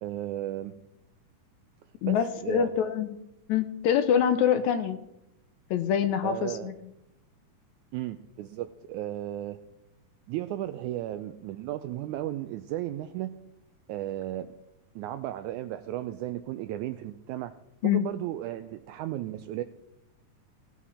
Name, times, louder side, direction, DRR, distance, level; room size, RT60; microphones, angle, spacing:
voice 1, 0.0-0.8 2.1-2.8 6.2-6.7 7.9-9.6 10.3-13.3 13.9-14.5 15.0-17.5 17.8-19.6, right 13 dB, 80° right, 10 dB, 1.8 m, -34 dB
voice 2, 2.0-3.2 3.5-5.0 5.7-6.7 17.8-18.0, left 9 dB, 75° left, 9 dB, 1.9 m, -25 dB
18.0 x 7.2 x 4.2 m, 0.85 s
omnidirectional pair, 3.8 m